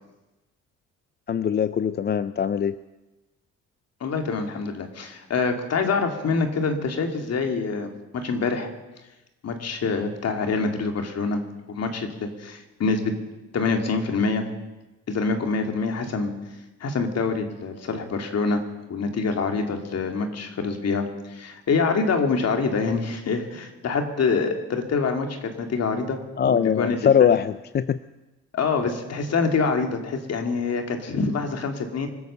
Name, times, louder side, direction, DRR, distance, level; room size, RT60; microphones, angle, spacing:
voice 1, 1.3-2.8 26.4-28.0, left 8 dB, 35° left, 14 dB, 0.5 m, -21 dB
voice 2, 4.0-8.7 9.4-11.4 11.7-13.1 13.5-14.4 15.1-16.3 16.8-18.6 18.9-27.3 28.5-32.1, left 4 dB, 55° left, 4 dB, 2.6 m, -26 dB
24.5 x 8.3 x 6.8 m, 1.1 s
cardioid pair, 90°, 30 cm